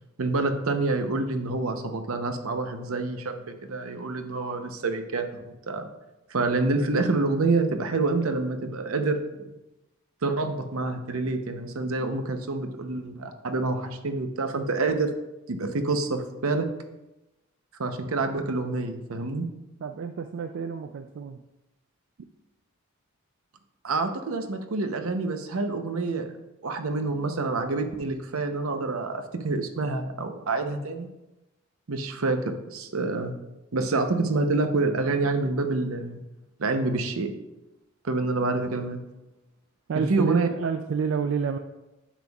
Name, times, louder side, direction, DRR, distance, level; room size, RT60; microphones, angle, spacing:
voice 1, 0.2-5.9 6.3-9.5 10.2-15.1 15.5-16.7 17.8-19.5 23.8-26.3 26.6-31.1 31.9-33.3 33.7-36.2 36.6-37.3 38.0-39.0 39.9-40.5, right 3 dB, 75° right, 7 dB, 0.7 m, -27 dB
voice 2, 19.8-21.4 39.9-41.6, right 6 dB, 60° right, 8 dB, 0.3 m, -29 dB
10.0 x 7.0 x 2.3 m, 0.98 s
head